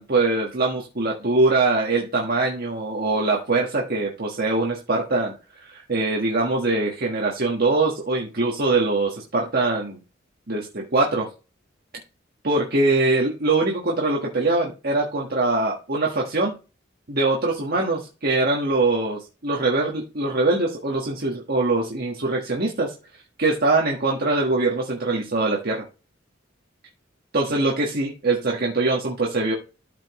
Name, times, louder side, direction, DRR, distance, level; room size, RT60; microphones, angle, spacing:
voice 1, 0.0-10.0 10.5-11.3 12.4-16.5 17.1-22.9 23.4-25.8 27.3-29.5, right 2 dB, 50° right, -2 dB, 1.5 m, -23 dB
13.0 x 5.3 x 3.0 m, 0.32 s
head